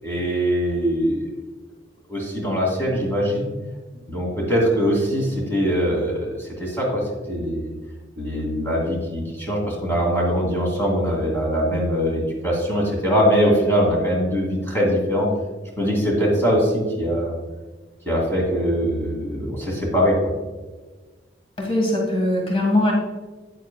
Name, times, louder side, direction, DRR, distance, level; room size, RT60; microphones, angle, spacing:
voice 1, 0.0-1.3 2.1-3.5 4.1-7.7 8.2-15.3 15.8-17.3 18.1-20.3, equal, 15° left, -3 dB, 2.5 m, -22 dB
voice 2, 21.6-22.9, left 1 dB, 30° left, -2 dB, 1.7 m, -21 dB
8.9 x 8.3 x 2.3 m, 1.3 s
head